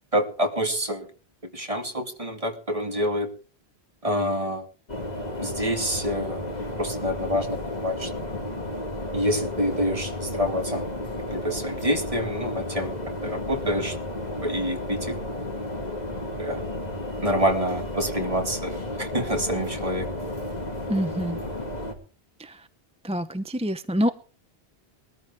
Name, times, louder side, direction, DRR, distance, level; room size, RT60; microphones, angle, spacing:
voice 1, 0.1-1.1 1.5-3.3 4.0-4.7 5.4-6.4 6.8-8.1 9.1-10.9 11.3-12.9 13.2-14.0 14.4-15.1 16.4-16.6 17.2-20.1, equal, 35° right, 4 dB, 2.4 m, -27 dB
sound 1, 4.9-21.9, left 1 dB, 40° left, 2.6 m, -33 dB
voice 2, 20.9-21.4 22.4-22.7 23.0-24.1, equal, 5° right, 11 dB, 0.6 m, -26 dB
21.0 x 14.0 x 3.6 m, 0.38 s
omnidirectional pair, 1.1 m